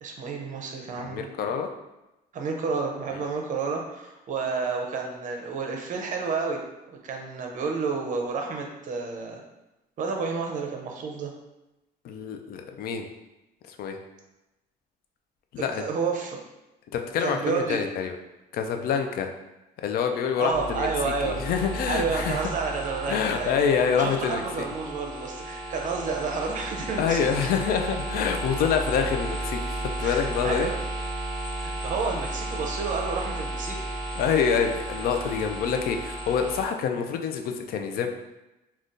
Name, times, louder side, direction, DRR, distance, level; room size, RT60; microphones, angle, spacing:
voice 1, 0.0-1.3 2.3-6.6 7.0-9.4 10.0-11.3 15.7-16.4 17.2-17.8 20.4-21.4 21.8-23.6 23.9-27.5 30.0-30.8 31.6-33.8 36.9-37.0, right 4 dB, 50° right, 2 dB, 0.6 m, -30 dB
voice 2, 1.0-1.7 12.0-13.1 13.7-14.0 15.5-15.8 16.9-18.2 18.5-19.3 19.8-22.4 23.1-24.7 27.0-30.7 34.2-38.1, left 7 dB, 65° left, 5 dB, 0.4 m, -26 dB
sound 1, 20.5-36.7, right 1 dB, 5° left, 1.2 m, -34 dB
3.5 x 2.3 x 2.6 m, 0.98 s
cardioid pair, 110°, 17 cm